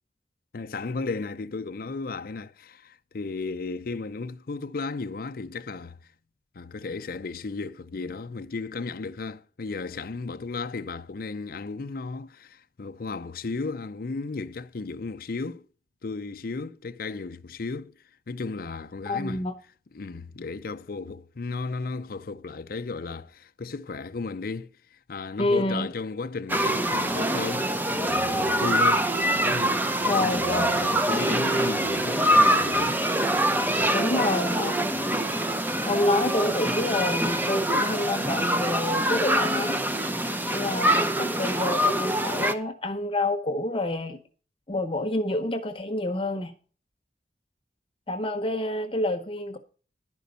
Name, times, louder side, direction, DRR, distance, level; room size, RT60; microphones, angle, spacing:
voice 1, 0.5-6.0 6.5-15.7 16.0-17.9 18.3-19.4 19.9-24.7 25.1-29.1 29.4-33.3, left 4 dB, 55° left, 0.5 m, -34 dB
voice 2, 19.0-19.5 25.4-25.9 30.1-30.9 33.9-35.0 35.8-39.8 40.5-44.2 44.7-46.5 48.1-49.6, left 2 dB, 30° left, 0.9 m, -28 dB
sound 1, 26.5-42.5, right 1 dB, 10° right, 0.6 m, -24 dB
11.5 x 5.1 x 6.7 m
head